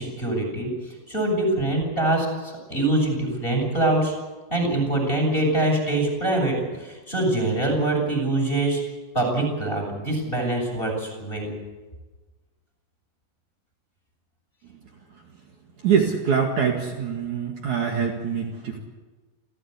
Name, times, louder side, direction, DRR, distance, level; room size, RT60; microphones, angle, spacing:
voice 1, 0.0-4.1 4.5-8.8 9.1-11.5, right 2 dB, 10° left, 1 dB, 7.4 m, -24 dB
voice 2, 15.8-18.8, right 7 dB, 55° right, 0 dB, 3.0 m, -24 dB
28.5 x 15.5 x 8.4 m, 1.3 s
omnidirectional pair, 4.7 m